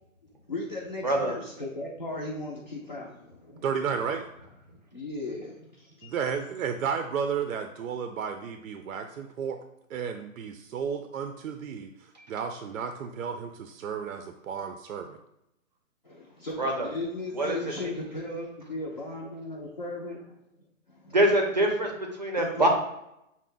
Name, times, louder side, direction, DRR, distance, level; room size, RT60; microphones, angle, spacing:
voice 1, 0.5-3.9 4.9-6.1 16.0-20.4 20.9-21.2 22.3-22.7, left 2 dB, 35° left, -5 dB, 0.4 m, -37 dB
voice 2, 3.6-4.3 6.0-9.6 9.9-15.2, right 6 dB, 75° right, 7 dB, 0.5 m, -33 dB
voice 3, 17.4-17.9 21.1-22.7, right 1 dB, 35° right, 1 dB, 0.5 m, -25 dB
6.0 x 2.1 x 3.7 m, 0.84 s
hypercardioid pair, 175°, 41 cm